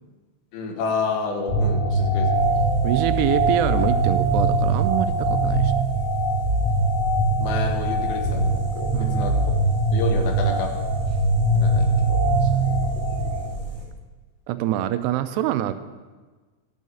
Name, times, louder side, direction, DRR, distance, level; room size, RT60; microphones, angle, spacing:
voice 1, 0.5-2.6 7.4-9.4 9.9-10.7 11.5-12.7, left 4 dB, 85° left, 3 dB, 3.5 m, -30 dB
sound 1, 1.5-13.4, right 2 dB, 40° left, 3.1 m, -22 dB
sound 2, 2.3-13.9, equal, ahead, 2.9 m, -38 dB
voice 2, 2.8-5.9 8.9-9.3 14.5-15.7, right 12 dB, 85° right, 11 dB, 2.6 m, -25 dB
10.5 x 6.4 x 6.9 m, 1.3 s
omnidirectional pair, 4.8 m